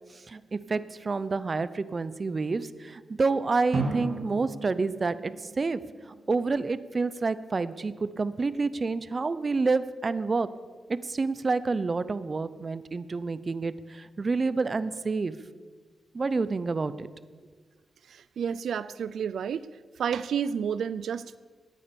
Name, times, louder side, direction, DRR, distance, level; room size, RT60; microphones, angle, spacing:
voice 1, 0.0-5.8 6.1-10.5 10.9-15.3 16.1-17.1, right 4 dB, 35° right, 15 dB, 0.7 m, -28 dB
Drum, 3.7-6.4, right 3 dB, 60° right, 2.8 m, -35 dB
voice 2, 18.1-19.7 20.0-21.4, right 7 dB, 80° right, 16 dB, 0.4 m, -30 dB
17.5 x 10.0 x 6.9 m, 1.4 s
wide cardioid pair, 120°, 0 cm